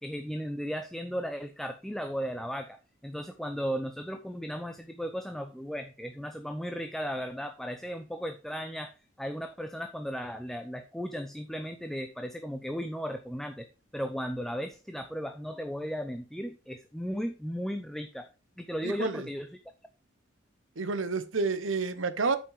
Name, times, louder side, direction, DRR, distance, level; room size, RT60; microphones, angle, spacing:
voice 1, 0.0-13.7 13.9-18.3 18.6-19.5, equal, ahead, 7 dB, 0.5 m, -36 dB
voice 2, 18.8-19.3 20.8-22.4, right 4 dB, 75° right, 12 dB, 0.9 m, -29 dB
8.8 x 5.5 x 4.9 m, 0.31 s
head